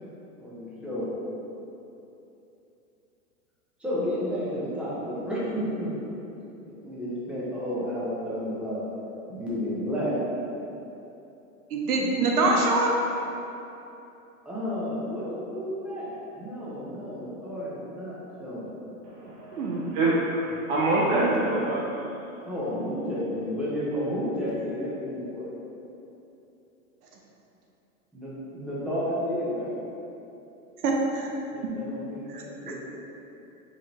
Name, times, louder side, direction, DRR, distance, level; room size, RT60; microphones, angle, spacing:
voice 1, 0.4-1.1 3.8-5.9 6.7-8.8 9.3-10.1 12.4-12.6 14.4-18.1 18.4-18.7 22.4-25.5 28.1-29.8 31.5-32.7, equal, 5° right, -9 dB, 1.0 m, -31 dB
voice 2, 11.7-12.9 19.5-19.8 21.1-21.4 30.8-31.3 32.3-32.7, right 2 dB, 90° right, 0 dB, 0.9 m, -25 dB
voice 3, 19.0-21.8, right 2 dB, 30° right, -5 dB, 0.5 m, -26 dB
4.9 x 3.8 x 2.9 m, 2.9 s
hypercardioid pair, 125°, 44 cm